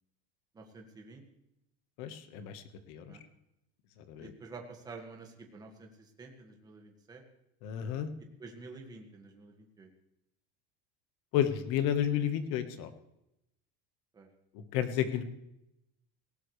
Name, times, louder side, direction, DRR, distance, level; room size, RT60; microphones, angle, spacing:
voice 1, 0.5-1.3 3.1-3.2 4.2-7.2 8.4-9.9 14.1-14.3, right 3 dB, 15° right, 2 dB, 1.8 m, -49 dB
voice 2, 2.0-3.2 4.1-4.3 7.6-8.1 11.3-12.9 14.5-15.2, left 10 dB, 50° left, 10 dB, 1.4 m, -32 dB
18.0 x 17.5 x 3.3 m, 0.85 s
cardioid pair, 175°, 29 cm